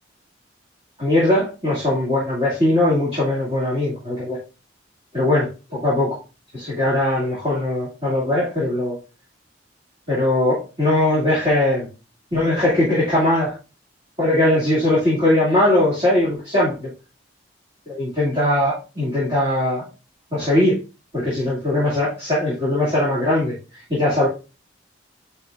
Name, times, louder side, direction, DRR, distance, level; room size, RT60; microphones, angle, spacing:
voice 1, 1.0-4.4 5.1-6.2 6.5-9.0 10.1-11.9 12.3-13.5 14.2-16.9 17.9-19.8 20.3-20.8 21.1-23.5 23.9-24.3, left 1 dB, 35° right, -10 dB, 2.6 m, -20 dB
9.6 x 4.2 x 2.6 m, 0.31 s
head